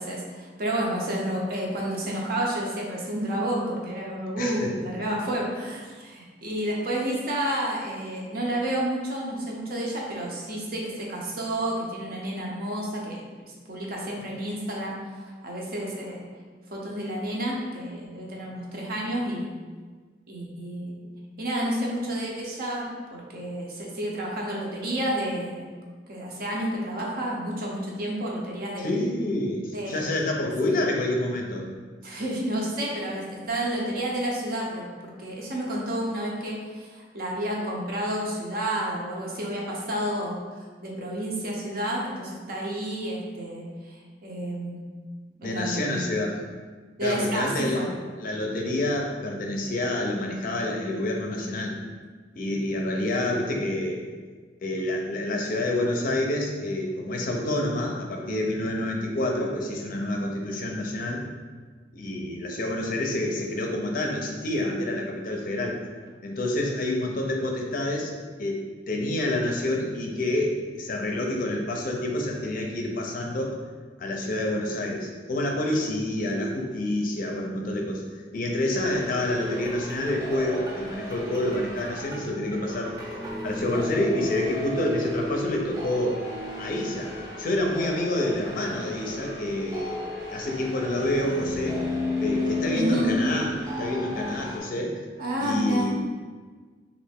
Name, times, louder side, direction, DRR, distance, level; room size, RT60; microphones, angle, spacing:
voice 1, 0.0-16.2 16.7-19.5 20.3-20.9 21.4-25.7 26.1-28.9 29.7-30.0 32.0-44.0 44.2-44.8 45.4-46.0 47.0-47.9 92.7-93.2 95.2-95.9, right 1 dB, 55° right, -2 dB, 0.7 m, -30 dB
voice 2, 4.4-4.7 28.8-31.7 45.4-46.4 47.0-47.8 48.1-51.8 52.3-54.1 54.6-61.2 61.9-65.8 66.2-68.1 68.4-73.6 74.0-78.0 78.3-83.0 83.4-86.2 86.6-87.1 87.4-91.8 92.2-93.5 93.8-95.0 95.4-96.0, left 1 dB, 50° left, 1 dB, 0.5 m, -28 dB
sound 1, 78.7-94.6, left 2 dB, 20° right, 0.6 m, -34 dB
3.2 x 2.5 x 3.4 m, 1.5 s
head